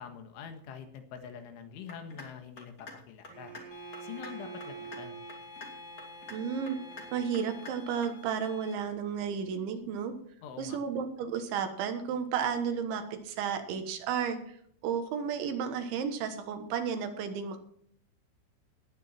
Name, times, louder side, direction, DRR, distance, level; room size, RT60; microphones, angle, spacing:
voice 1, 0.0-3.5 4.0-5.2 10.4-10.8, left 7 dB, 75° left, 7 dB, 4.0 m, -45 dB
sound 1, 1.9-2.3 2.6-2.9 3.2-3.6 3.9-4.3 4.6-5.0 5.3-5.7 6.0-6.4 6.7-7.0 7.3-7.7 8.0-8.1, left 3 dB, 25° left, 2.3 m, -45 dB
Bowed string instrument, 3.3-8.0, right 6 dB, 35° right, 2.8 m, -48 dB
sound 2, 3.7-8.7, left 5 dB, 60° left, 2.0 m, -50 dB
voice 2, 6.3-6.8 7.1-10.1 10.6-14.6 14.8-17.6, right 7 dB, 75° right, 7 dB, 3.6 m, -33 dB
18.5 x 9.5 x 4.4 m, 0.64 s
omnidirectional pair, 5.7 m